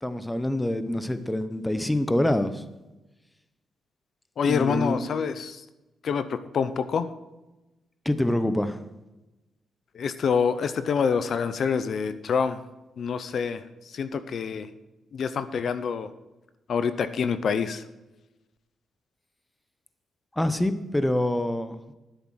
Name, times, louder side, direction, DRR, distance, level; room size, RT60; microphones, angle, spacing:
voice 1, 0.0-2.6 4.4-5.0 8.0-8.8 20.4-21.8, left 1 dB, 10° left, 11 dB, 0.7 m, -26 dB
voice 2, 4.4-5.6 6.0-7.1 9.9-12.6 13.0-13.6 13.9-14.7 15.1-16.1 16.7-17.8, left 6 dB, 55° left, 12 dB, 0.6 m, -26 dB
10.5 x 8.2 x 6.3 m, 1.0 s
cardioid pair, 110°, 0 cm